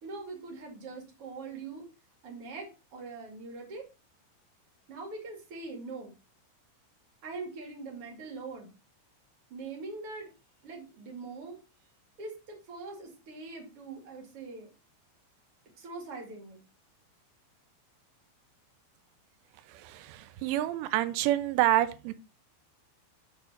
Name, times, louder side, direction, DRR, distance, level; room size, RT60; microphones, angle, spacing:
voice 1, 0.0-1.9 2.2-3.9 4.9-6.1 7.2-8.7 9.5-10.3 10.6-11.6 12.2-14.7 15.8-16.6, right 3 dB, 50° right, 1.8 m, -42 dB
voice 2, 19.7-22.1, right 14 dB, 85° right, 2.5 m, -28 dB
8.3 x 3.7 x 6.4 m
omnidirectional pair, 5.8 m